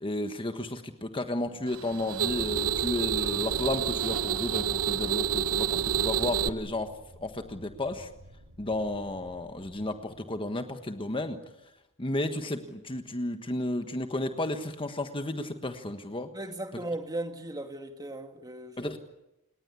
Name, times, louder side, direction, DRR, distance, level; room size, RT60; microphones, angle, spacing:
voice 1, 0.0-6.9 7.2-8.1 8.6-11.4 12.0-16.3 18.8-19.0, left 1 dB, 25° left, 1.4 m, -33 dB
sound 1, 1.7-6.5, right 8 dB, 75° right, 0.9 m, -28 dB
sound 2, 5.0-11.2, right 1 dB, 90° right, 3.0 m, -53 dB
voice 2, 16.3-18.8, right 1 dB, 20° right, 2.3 m, -37 dB
30.0 x 19.0 x 8.4 m
head